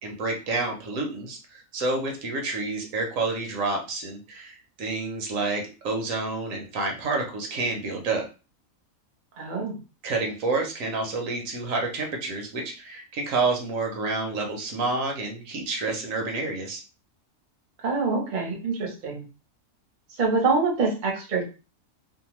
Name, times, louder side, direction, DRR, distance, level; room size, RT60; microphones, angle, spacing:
voice 1, 0.0-8.2 10.0-16.8, right 3 dB, 70° right, 2 dB, 1.0 m, -29 dB
voice 2, 9.4-9.8 17.8-19.2 20.2-21.4, right 4 dB, 45° right, 0 dB, 0.7 m, -25 dB
2.7 x 2.1 x 2.9 m, 0.33 s
omnidirectional pair, 1.5 m